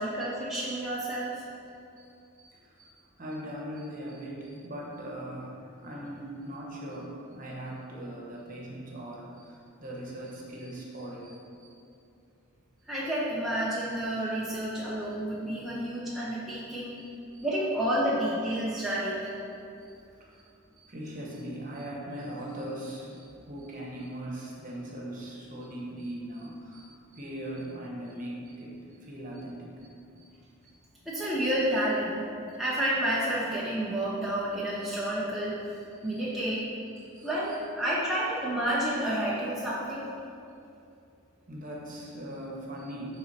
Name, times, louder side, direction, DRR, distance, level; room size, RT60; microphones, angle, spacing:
voice 1, 0.0-1.3 12.9-16.9 17.4-19.3 31.1-32.1 32.6-35.6 36.0-36.6 37.2-40.1, right 1 dB, ahead, -8 dB, 0.7 m, -30 dB
voice 2, 2.0-11.7 16.9-17.4 19.8-29.9 30.2-30.3 35.9-36.3 36.9-37.3 41.5-43.2, right 1 dB, 40° right, -3 dB, 1.2 m, -40 dB
7.1 x 4.0 x 5.8 m, 2.6 s
head